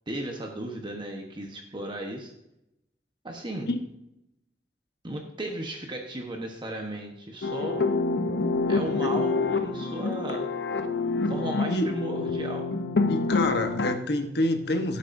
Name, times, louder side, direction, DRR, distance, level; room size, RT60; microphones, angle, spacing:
voice 1, 0.1-2.3 3.2-3.7 5.0-8.0 8.7-10.5 11.3-12.7, right 1 dB, 25° right, 2 dB, 1.2 m, -35 dB
sound 1, 7.4-14.0, left 3 dB, 80° left, 0.8 m, -27 dB
voice 2, 13.1-15.0, left 1 dB, 65° left, 6 dB, 1.2 m, -27 dB
17.0 x 8.6 x 2.7 m, 0.84 s
head